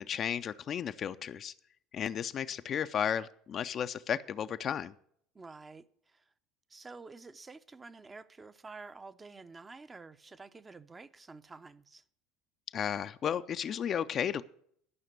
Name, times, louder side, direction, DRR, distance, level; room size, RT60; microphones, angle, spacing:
voice 1, 0.0-1.5 1.9-4.9 12.7-14.4, left 8 dB, 40° left, 0.5 m, -33 dB
voice 2, 5.3-6.3 6.7-12.0, right 4 dB, 20° right, 0.7 m, -50 dB
12.0 x 5.8 x 8.2 m
hypercardioid pair, 70°, 0 cm